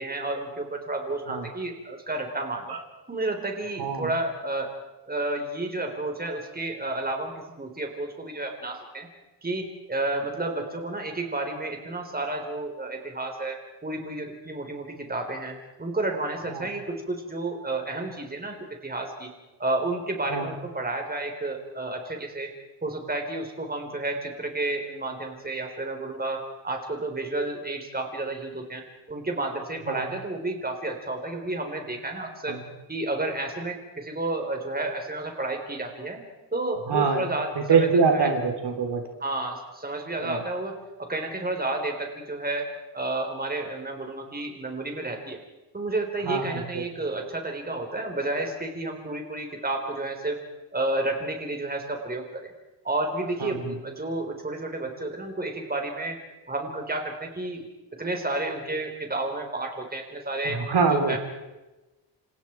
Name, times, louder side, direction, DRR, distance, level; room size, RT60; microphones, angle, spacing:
voice 1, 0.0-2.7 3.1-4.7 5.1-9.1 9.4-18.6 18.8-19.3 19.6-22.5 22.8-32.6 32.9-36.2 36.5-38.3 39.2-42.7 42.9-45.4 45.7-50.4 50.7-52.5 52.8-56.2 56.5-57.6 58.0-60.6 60.9-61.2, right 2 dB, 20° right, 3 dB, 4.4 m, -31 dB
voice 2, 3.8-4.1 16.5-16.7 20.3-20.5 29.9-30.1 32.5-32.7 36.9-37.3 37.6-39.0 40.2-40.4 46.2-46.8 53.4-53.8 60.5-61.2, right 5 dB, 65° right, 3 dB, 3.7 m, -24 dB
29.5 x 27.5 x 4.7 m, 1.1 s
wide cardioid pair, 135°, 44 cm